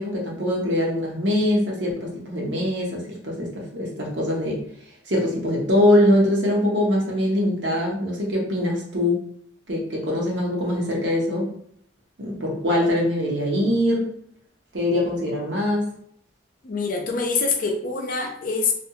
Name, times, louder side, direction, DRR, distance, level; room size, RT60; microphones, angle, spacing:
voice 1, 0.0-4.7 5.1-9.2 9.7-11.5 12.2-14.1 14.7-15.9, left 1 dB, 85° right, -2 dB, 0.9 m, -23 dB
voice 2, 16.6-18.7, left 4 dB, 50° left, 2 dB, 0.5 m, -25 dB
2.4 x 2.3 x 2.8 m, 0.65 s
head